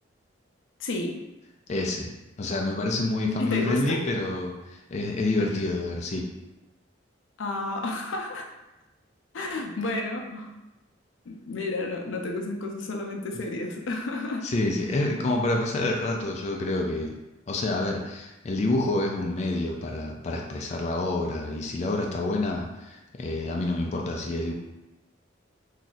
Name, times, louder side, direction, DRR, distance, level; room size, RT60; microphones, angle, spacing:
voice 1, 0.8-1.1 3.4-4.0 7.4-8.5 9.3-10.5 11.3-14.5, left 2 dB, 85° left, 2 dB, 0.5 m, -31 dB
voice 2, 1.7-2.1 2.4-6.3 14.4-17.1 17.5-24.5, left 2 dB, 35° left, 0 dB, 0.3 m, -28 dB
2.7 x 2.4 x 3.9 m, 1.0 s
head